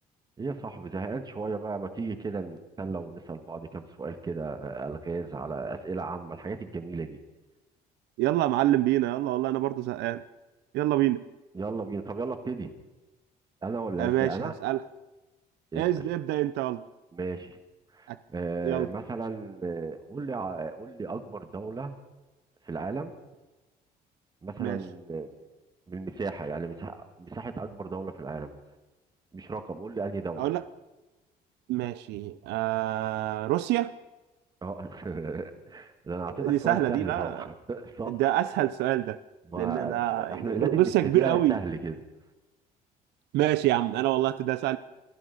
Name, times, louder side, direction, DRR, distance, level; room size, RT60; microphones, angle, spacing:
voice 1, 0.4-7.2 11.5-12.7 13.6-14.5 15.7-16.0 17.1-17.6 17.9-22.0 22.6-23.1 24.4-25.3 25.9-28.6 29.3-30.5 34.6-38.3 39.5-42.0, right 4 dB, 25° right, 8 dB, 1.5 m, -35 dB
voice 2, 8.2-10.2 10.7-11.2 14.0-14.8 15.8-16.8 18.1-18.2 18.6-18.9 24.6-24.8 30.4-30.6 31.7-33.9 36.4-37.5 38.1-39.2 39.6-41.6 43.3-44.8, right 15 dB, 85° right, 14 dB, 0.5 m, -26 dB
25.0 x 11.0 x 4.0 m, 1.1 s
cardioid pair, 110°, 17 cm